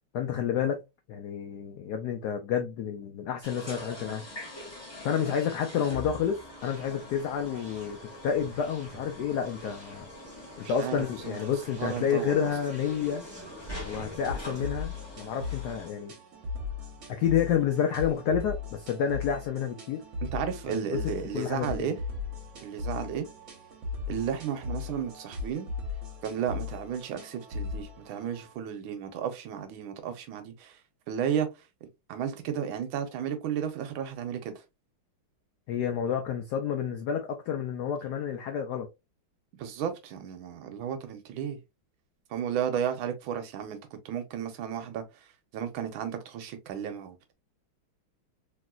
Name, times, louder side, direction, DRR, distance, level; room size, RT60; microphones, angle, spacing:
voice 1, 0.1-0.8 1.1-4.2 5.0-10.1 10.6-13.2 13.8-16.1 17.1-20.0 21.0-21.9 35.7-38.9, left 8 dB, 85° left, 0.8 m, -29 dB
sound 1, 3.4-15.9, left 1 dB, 25° left, 0.6 m, -44 dB
Conversation, 6.6-15.0, equal, 5° right, 0.9 m, -49 dB
voice 2, 10.6-11.4 11.8-12.5 20.2-22.0 22.6-23.3 24.1-25.7 26.2-30.8 31.1-31.5 31.8-34.6 39.6-41.6 42.3-45.0 45.5-47.3, right 8 dB, 80° right, 1.4 m, -33 dB
sound 2, 13.7-28.5, left 4 dB, 45° right, 1.1 m, -38 dB
3.2 x 3.0 x 2.3 m
omnidirectional pair, 2.3 m